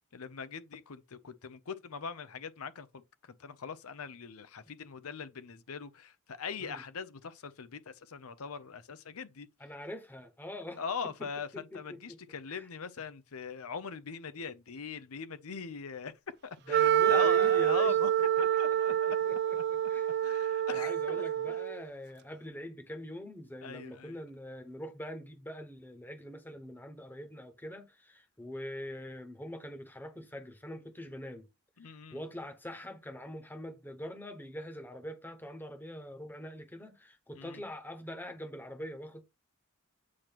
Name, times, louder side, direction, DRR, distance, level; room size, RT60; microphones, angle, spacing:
voice 1, 0.1-9.5 10.8-16.1 16.4-18.1 18.4-19.2 20.2-21.6 23.6-24.2 31.8-32.2 37.3-37.6, left 6 dB, 80° left, 0.7 m, -41 dB
voice 2, 9.6-12.2 12.5-12.7 16.7-18.0 18.9-19.0 19.3-20.1 20.7-31.5 31.8-39.2, left 1 dB, 10° left, 1.0 m, -44 dB
Wind instrument woodwind instrument, 16.7-21.8, right 11 dB, 50° right, 0.5 m, -27 dB
8.6 x 3.0 x 5.9 m
head